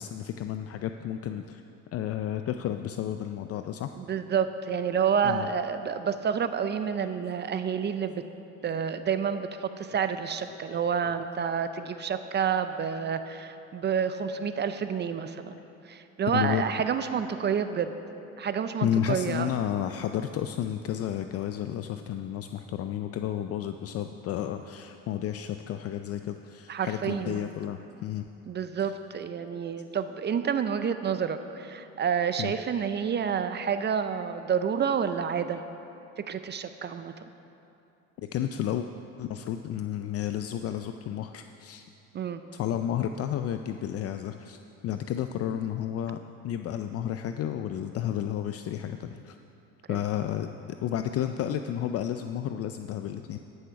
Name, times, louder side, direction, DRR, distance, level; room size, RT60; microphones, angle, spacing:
voice 1, 0.0-1.6 1.9-3.9 5.2-5.5 7.0-7.1 10.7-11.1 15.5-15.6 16.3-16.6 18.8-28.3 28.8-28.9 32.4-32.5 38.3-38.9 39.2-41.9 42.5-49.4 49.9-53.4, left 10 dB, 45° left, 8 dB, 0.4 m, -32 dB
voice 2, 4.0-8.2 8.6-15.5 15.8-17.9 18.4-19.5 26.7-27.4 28.5-35.6 36.2-37.1 42.1-42.4 49.9-50.0, right 7 dB, 35° right, 10 dB, 0.5 m, -29 dB
13.0 x 6.3 x 5.8 m, 2.8 s
supercardioid pair, 90°, 33 cm